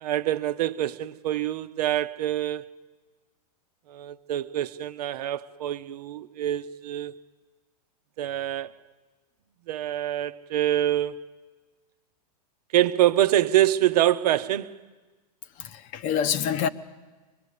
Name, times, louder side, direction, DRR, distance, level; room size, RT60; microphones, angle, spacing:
voice 1, 0.0-2.7 3.9-7.1 8.2-8.7 9.7-11.2 12.7-14.8, right 13 dB, 70° right, 0.9 m, -25 dB
voice 2, 15.6-16.7, left 8 dB, 40° left, 0.9 m, -26 dB
24.0 x 21.0 x 8.5 m
hypercardioid pair, 130°, 21 cm